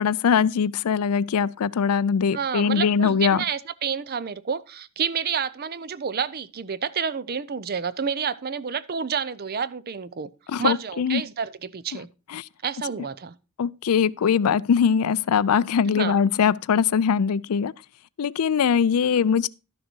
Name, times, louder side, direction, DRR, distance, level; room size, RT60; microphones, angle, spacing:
voice 1, 0.0-3.4 10.5-11.2 12.3-12.5 13.6-17.7 18.2-19.5, left 7 dB, 85° left, 0.4 m, -22 dB
voice 2, 2.3-10.3 10.6-12.1 12.6-13.3 15.9-16.2, right 7 dB, 45° right, 0.5 m, -29 dB
12.5 x 6.5 x 4.5 m
head